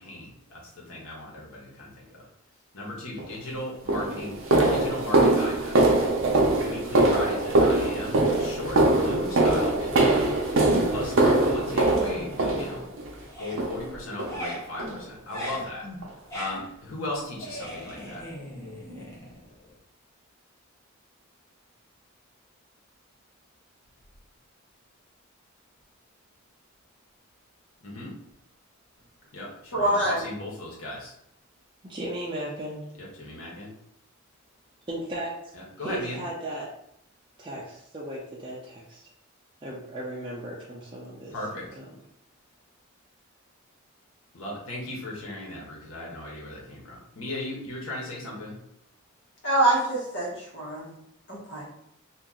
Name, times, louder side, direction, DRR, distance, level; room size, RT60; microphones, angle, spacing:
voice 1, 0.0-2.2 2.7-5.9 6.6-10.4 10.9-12.8 13.4-15.9 16.3-18.2 27.8-28.1 29.3-31.1 32.9-33.7 35.5-36.2 41.3-41.7 44.3-48.6, left 1 dB, 90° left, -4 dB, 1.2 m, -37 dB
sound 1, 3.2-3.3 3.9-13.1 13.6-13.9 14.2-14.4 14.8-15.0 15.4-15.5 16.0-16.1, right 2 dB, 70° right, 0.7 m, -22 dB
sound 2, 10.6-11.2 11.6-12.9 13.2-19.7, equal, 15° left, 0.9 m, -39 dB
voice 2, 29.7-30.2 49.4-50.9 51.3-51.7, right 1 dB, 60° left, -4 dB, 1.3 m, -25 dB
voice 3, 31.8-32.9 34.9-36.7 37.4-39.1 39.6-41.3 41.7-41.9, right 1 dB, 25° right, -6 dB, 0.6 m, -36 dB
2.9 x 2.5 x 3.7 m, 0.75 s
head